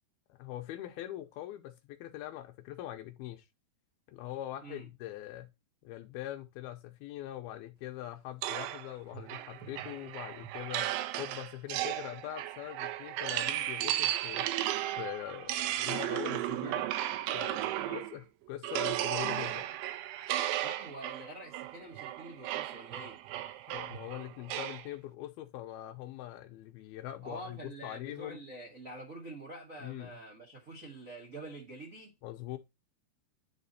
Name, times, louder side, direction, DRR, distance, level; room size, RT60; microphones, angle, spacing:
voice 1, 0.3-3.4 4.1-5.5 5.8-14.7 14.9-16.9 17.3-19.7 23.7-28.4 29.8-30.2 32.2-32.6, left 13 dB, 80° left, 2.5 m, -42 dB
sound 1, 8.4-18.2 18.6-24.9, right 13 dB, 85° right, 2.6 m, -35 dB
voice 2, 20.6-23.2 27.2-32.1, right 1 dB, 45° right, 1.0 m, -46 dB
9.6 x 4.2 x 4.0 m
omnidirectional pair, 4.7 m